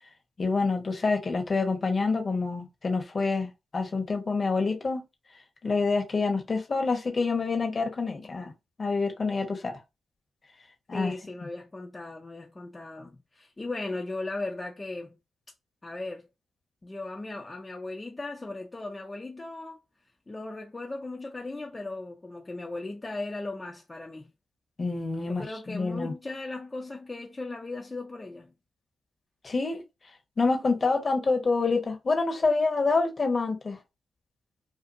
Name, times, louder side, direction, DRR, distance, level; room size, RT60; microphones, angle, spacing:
voice 1, 0.4-5.0 5.6-8.5 8.8-9.8 10.9-11.1 24.8-26.1 29.4-29.8 30.4-33.8, left 4 dB, 45° left, 1.0 m, -27 dB
voice 2, 10.9-15.2 15.8-16.3 16.8-19.8 20.3-24.3 25.2-28.5, left 2 dB, 30° left, 0.6 m, -37 dB
2.6 x 2.4 x 2.6 m
supercardioid pair, 45°, 0 cm